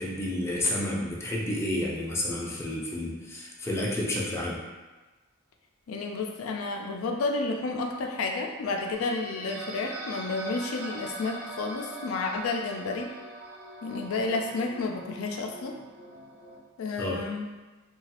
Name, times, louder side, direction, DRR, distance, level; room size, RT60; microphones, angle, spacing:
voice 1, 0.0-4.6 17.0-17.2, left 1 dB, 15° left, -4 dB, 0.4 m, -30 dB
voice 2, 5.9-13.1 13.8-15.8 16.8-17.5, left 3 dB, 80° left, 2 dB, 0.4 m, -31 dB
sound 1, 8.9-16.6, right 2 dB, 55° right, 0.6 m, -42 dB
2.9 x 2.3 x 2.8 m, 1.2 s
head